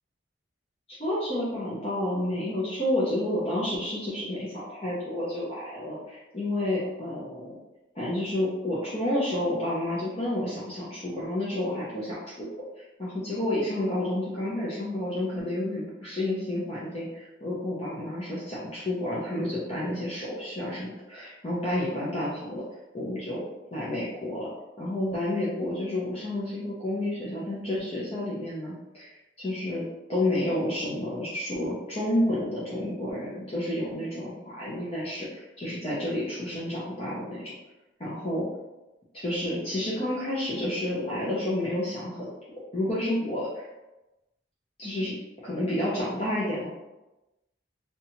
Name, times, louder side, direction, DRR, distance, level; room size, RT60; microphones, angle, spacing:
voice 1, 0.9-7.5 7.9-12.5 12.8-22.6 22.9-23.4 23.7-24.5 24.8-37.5 38.0-38.5 39.1-42.3 42.7-43.6 44.8-45.2 45.4-46.7, left 1 dB, 30° left, -8 dB, 0.5 m, -30 dB
2.8 x 2.3 x 2.8 m, 1.0 s
head